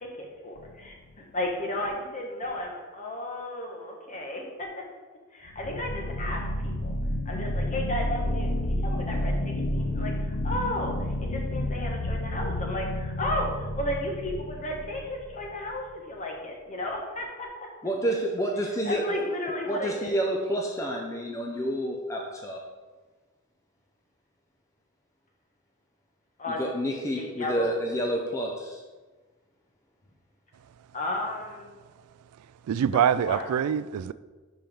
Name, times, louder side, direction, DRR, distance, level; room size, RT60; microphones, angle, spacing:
voice 1, 0.0-4.7 5.3-6.9 7.2-10.9 11.2-17.7 18.8-20.1 26.4-26.7 27.2-27.7 30.9-31.7 33.2-33.5, left 1 dB, 35° left, 0 dB, 1.3 m, -34 dB
sound 1, 0.6-1.1 5.5-15.7, left 1 dB, 75° left, 0.6 m, -30 dB
voice 2, 17.8-22.6 26.5-28.8, equal, 15° left, 0 dB, 0.6 m, -29 dB
voice 3, 32.7-34.1, right 8 dB, 85° right, 17 dB, 0.3 m, -24 dB
10.5 x 4.4 x 3.6 m, 1.3 s
head